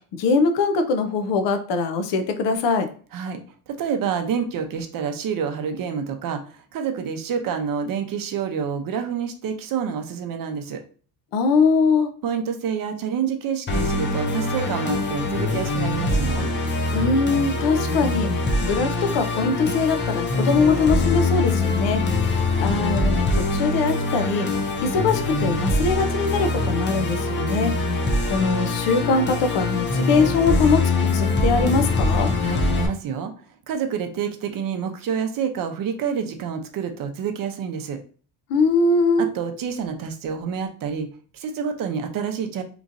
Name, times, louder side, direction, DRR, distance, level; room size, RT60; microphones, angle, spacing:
voice 1, 0.1-2.9 11.3-12.1 16.9-18.3 18.6-22.0 22.6-24.5 24.8-27.7 28.3-32.3 38.5-39.3, left 4 dB, 80° left, 7 dB, 0.6 m, -22 dB
voice 2, 3.7-10.8 12.2-16.5 32.4-33.3 33.7-38.0 39.2-42.6, right 7 dB, 55° right, 6 dB, 0.6 m, -28 dB
Musical instrument, 13.7-32.9, left 2 dB, 30° left, 0.4 m, -23 dB
3.0 x 2.6 x 2.5 m, 0.41 s
cardioid pair, 125°, 42 cm